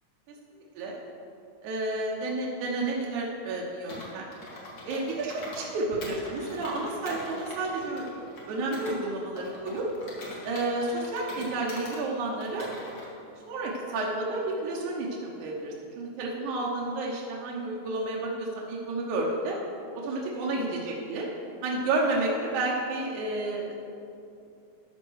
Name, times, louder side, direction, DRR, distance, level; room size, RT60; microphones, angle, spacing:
voice 1, 0.5-1.0 1.6-4.3 4.8-8.1 8.5-9.9 10.4-12.7 13.5-19.6 20.0-21.3 21.6-23.7, right 2 dB, 85° right, -3 dB, 2.5 m, -31 dB
Computer keyboard, 3.9-5.7 6.0-9.0 9.4-12.0 12.4-13.1, left 1 dB, 35° left, 2.0 m, -43 dB
13.0 x 4.5 x 6.2 m, 2.7 s
omnidirectional pair, 3.4 m